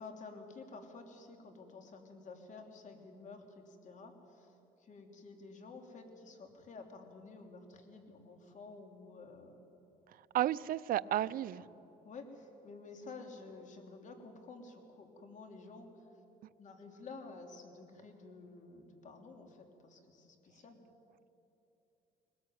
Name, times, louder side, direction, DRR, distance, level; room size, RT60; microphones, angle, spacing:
voice 1, 0.0-9.6 11.0-11.8 12.0-16.1 16.6-20.8, left 3 dB, 45° left, 5 dB, 3.2 m, -51 dB
voice 2, 10.1-11.6, right 13 dB, 60° right, 17 dB, 0.5 m, -33 dB
21.0 x 20.5 x 9.3 m, 3.0 s
cardioid pair, 110°, 17 cm